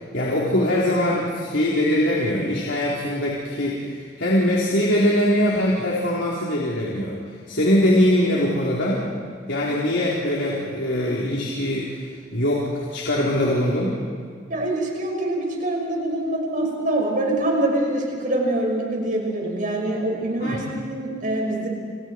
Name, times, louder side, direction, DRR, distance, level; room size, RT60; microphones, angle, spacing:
voice 1, 0.0-9.0 9.5-12.0 12.3-14.0 20.4-20.6, left 1 dB, 85° left, -5 dB, 3.8 m, -22 dB
voice 2, 14.5-21.7, right 1 dB, 45° right, 0 dB, 5.8 m, -24 dB
29.5 x 28.0 x 4.6 m, 2.1 s
head